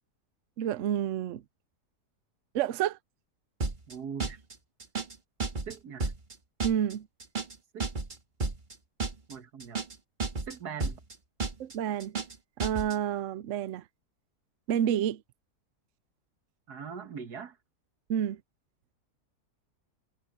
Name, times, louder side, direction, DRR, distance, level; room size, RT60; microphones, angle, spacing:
voice 1, 0.6-1.4 2.5-3.0 6.6-7.1 11.6-12.2 12.6-13.8 14.7-15.2 18.1-18.4, right 10 dB, 65° right, 0.8 m, -29 dB
sound 1, 3.6-3.9 4.2-4.5 4.8-5.2 5.4-5.8 6.0-6.3 6.6-6.9 7.2-7.6 7.8-8.2 8.4-8.7 9.0-9.3 9.6-10.0 10.2-10.6 10.8-11.1 11.4-11.7 12.0-12.4 12.6-13.0, right 3 dB, 30° right, 1.6 m, -32 dB
voice 2, 3.9-4.4 5.7-6.1 7.7-7.9 9.3-9.8 10.5-11.0 16.7-17.6, right 7 dB, 80° right, 2.0 m, -41 dB
omnidirectional pair, 1.7 m